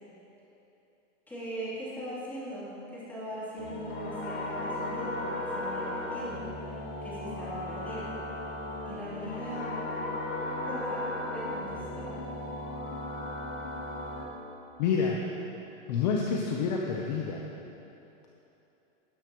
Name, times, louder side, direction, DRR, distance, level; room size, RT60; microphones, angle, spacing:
voice 1, 1.3-6.4 7.0-8.1 8.8-9.7 10.6-12.2, right 1 dB, 5° left, -10 dB, 3.2 m, -40 dB
sound 1, 3.6-14.2, left 1 dB, 85° left, 3.1 m, -36 dB
voice 2, 14.8-15.2 15.9-17.4, left 5 dB, 35° left, 0 dB, 0.8 m, -28 dB
18.5 x 11.0 x 3.1 m, 2.9 s
hypercardioid pair, 165°, 38 cm